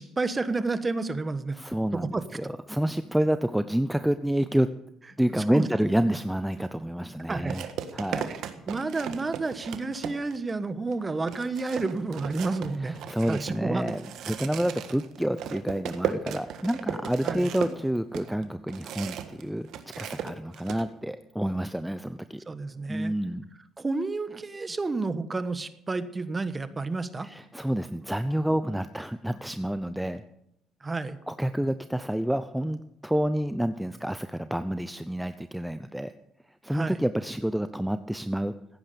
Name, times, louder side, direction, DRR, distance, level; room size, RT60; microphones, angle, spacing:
voice 1, 0.0-1.6 1.9-2.2 5.3-5.6 6.1-6.2 7.3-7.6 8.7-12.9 13.3-13.8 17.2-17.5 22.5-23.1 23.8-27.3 30.8-31.2 36.7-37.0, right 3 dB, 20° right, 12 dB, 1.3 m, -30 dB
voice 2, 1.5-4.7 5.2-7.7 7.9-8.4 12.8-14.0 14.3-19.7 20.0-22.4 22.9-23.5 27.2-30.2 31.3-36.1 36.6-38.5, right 1 dB, 5° right, 11 dB, 0.6 m, -28 dB
sound 1, 6.5-6.7 7.5-10.5 10.9-11.0 11.3-19.4 19.7-20.8, right 9 dB, 70° right, 1.5 m, -36 dB
16.0 x 9.7 x 6.9 m, 0.81 s
cardioid pair, 95°, 0 cm